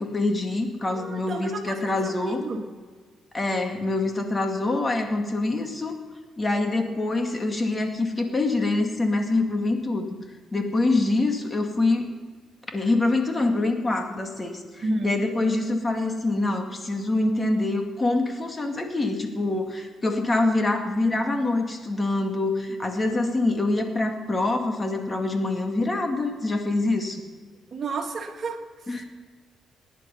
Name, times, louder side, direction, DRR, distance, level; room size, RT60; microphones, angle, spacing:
voice 1, 0.0-2.4 3.3-6.0 6.4-10.1 10.5-12.1 12.7-27.2 28.9-29.1, left 2 dB, 25° left, 4 dB, 2.2 m, -25 dB
voice 2, 0.8-2.6 14.8-15.2 27.7-28.9, right 3 dB, 50° right, 3 dB, 2.0 m, -32 dB
20.5 x 10.0 x 5.6 m, 1.5 s
cardioid pair, 90°, 0 cm